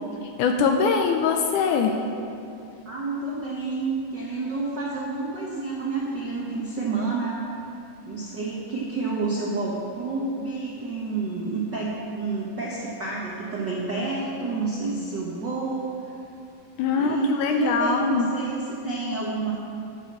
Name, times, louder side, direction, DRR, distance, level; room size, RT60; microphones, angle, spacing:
voice 1, 0.4-2.0 16.8-18.3, left 5 dB, 80° left, 4 dB, 1.9 m, -22 dB
voice 2, 2.8-7.4 8.0-16.1 16.9-19.5, right 3 dB, 65° right, -5 dB, 1.1 m, -29 dB
12.5 x 6.7 x 7.3 m, 2.6 s
omnidirectional pair, 4.0 m